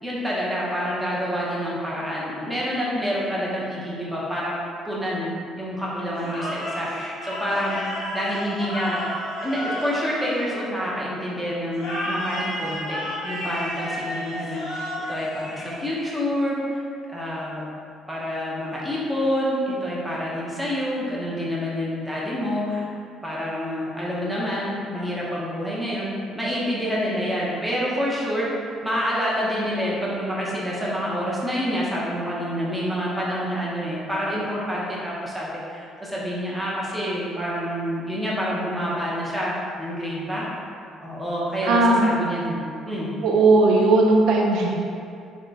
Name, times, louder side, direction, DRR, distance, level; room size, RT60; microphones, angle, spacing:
voice 1, 0.0-4.5 4.8-7.8 8.1-9.0 9.4-16.8 17.1-17.6 18.1-22.9 23.2-28.5 28.8-40.4 41.0-42.6 42.9-43.1, equal, ahead, -7 dB, 0.7 m, -27 dB
sound 1, 6.2-11.0 11.7-16.2, left 1 dB, 80° left, 1.2 m, -32 dB
voice 2, 41.6-42.2 43.2-44.7, right 2 dB, 70° right, -1 dB, 0.4 m, -17 dB
3.4 x 2.1 x 3.9 m, 2.5 s
cardioid pair, 145°, 0 cm